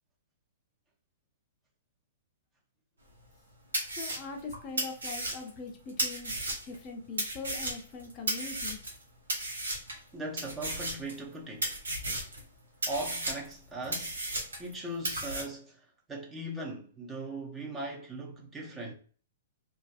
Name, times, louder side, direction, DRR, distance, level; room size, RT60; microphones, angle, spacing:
sound 1, 3.2-3.3 3.7-6.8 7.2-9.0 9.3-10.0 10.4-11.3 11.6-12.4 12.8-14.7 15.0-15.4, right 1 dB, 75° right, 0.8 m, -34 dB
voice 1, 3.9-6.3 6.7-8.8, left 4 dB, 30° left, 0.5 m, -41 dB
voice 2, 10.1-11.8 12.9-14.2 14.6-18.9, right 1 dB, 15° right, 0.6 m, -39 dB
2.5 x 2.3 x 2.3 m
figure-of-eight pair, 115°, 0 cm